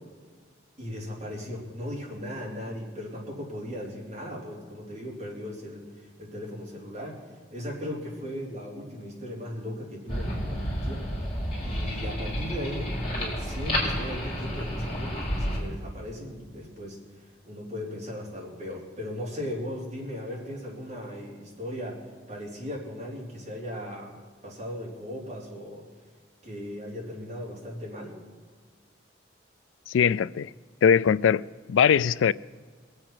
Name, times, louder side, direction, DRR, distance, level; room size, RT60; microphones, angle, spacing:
voice 1, 0.8-7.2 7.5-11.0 11.6-17.0 17.5-24.2 24.4-25.9 26.4-28.2, equal, 35° right, 3.5 m, -37 dB
sound 1, 10.1-15.6, equal, 30° left, 4.2 m, -30 dB
voice 2, 29.9-30.5 30.8-32.3, left 7 dB, 80° left, 0.3 m, -21 dB
21.5 x 8.1 x 6.0 m
head